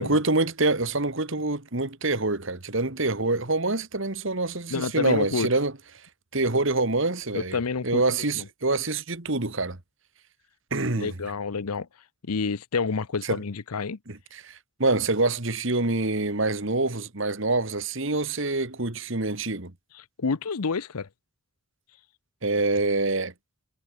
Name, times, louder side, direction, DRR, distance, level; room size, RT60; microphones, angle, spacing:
voice 1, 0.0-5.7 6.3-9.8 10.7-11.1 13.2-13.4 14.1-19.7 22.4-23.3, right 2 dB, 55° right, 1.9 m, -26 dB
voice 2, 4.7-5.5 7.3-8.0 8.3-8.5 11.0-11.9 12.3-14.0 19.9-21.1, left 4 dB, 85° left, 0.7 m, -29 dB
head